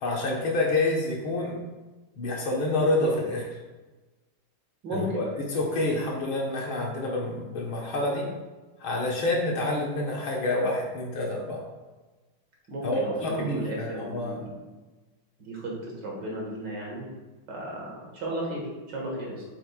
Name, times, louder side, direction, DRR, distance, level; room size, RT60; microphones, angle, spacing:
voice 1, 0.0-1.6 2.2-3.5 4.9-8.3 8.8-11.6 12.8-14.5, left 2 dB, 70° left, -1 dB, 2.1 m, -28 dB
voice 2, 4.8-5.2 12.7-14.5 15.4-15.8 16.0-17.1 17.5-19.4, right 1 dB, 55° right, -3 dB, 2.3 m, -34 dB
8.0 x 7.4 x 2.4 m, 1.2 s
omnidirectional pair, 2.4 m